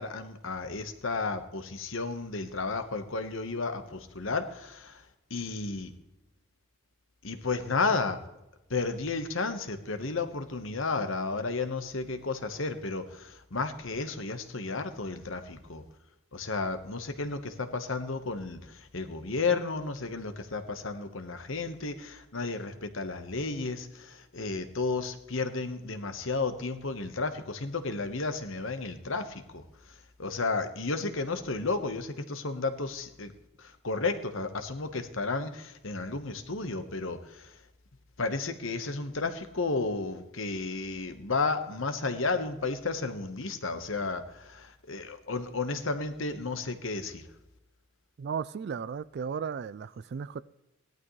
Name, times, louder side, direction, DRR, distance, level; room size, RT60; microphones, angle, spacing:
voice 1, 0.0-5.0 5.3-5.9 7.2-8.2 8.7-15.8 16.3-33.3 33.6-37.6 38.2-47.3, left 3 dB, 60° left, 8 dB, 1.2 m, -33 dB
voice 2, 48.2-50.4, right 6 dB, 50° right, 17 dB, 0.3 m, -35 dB
17.5 x 12.0 x 3.2 m, 0.94 s
head